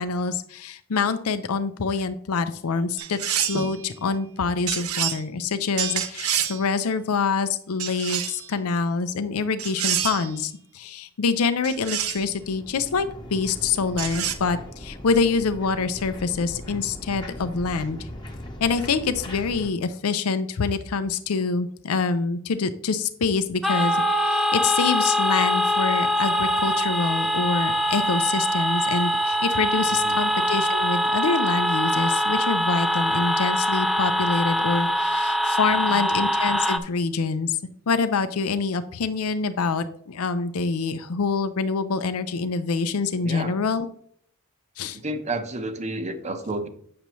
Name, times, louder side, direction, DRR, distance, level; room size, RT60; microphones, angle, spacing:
voice 1, 0.0-18.1 18.6-37.6 37.9-43.9 44.8-45.0, left 4 dB, 90° left, 10 dB, 0.5 m, -26 dB
sound 1, 3.0-3.7 4.7-5.2 5.8-6.6 7.8-8.5 9.6-10.3 11.6-12.3 14.0-14.3, right 9 dB, 85° right, 0.8 m, -27 dB
sound 2, 11.6-19.7, left 1 dB, 20° left, 1.0 m, -39 dB
sound 3, 23.6-36.8, equal, ahead, 0.5 m, -23 dB
voice 2, 29.9-30.2 35.7-36.0 43.2-43.6 44.9-46.7, right 2 dB, 30° right, 8 dB, 0.8 m, -31 dB
8.6 x 6.9 x 3.0 m, 0.63 s
head